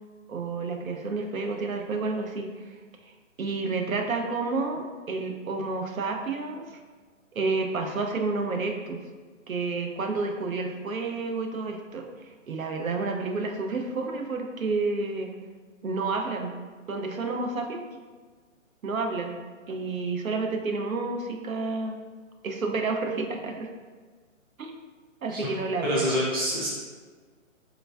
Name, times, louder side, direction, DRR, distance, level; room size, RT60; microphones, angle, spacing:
voice 1, 0.3-2.7 3.4-6.8 7.3-9.0 9.5-12.0 12.5-15.3 15.8-16.5 16.9-17.8 18.8-19.4 19.7-22.0 22.4-23.7 24.6-24.7 25.2-26.1, right 3 dB, 85° right, 3 dB, 0.7 m, -30 dB
voice 2, 25.8-26.7, left 1 dB, 20° right, -7 dB, 0.5 m, -27 dB
3.8 x 3.3 x 2.2 m, 1.5 s
figure-of-eight pair, 145°, 40 cm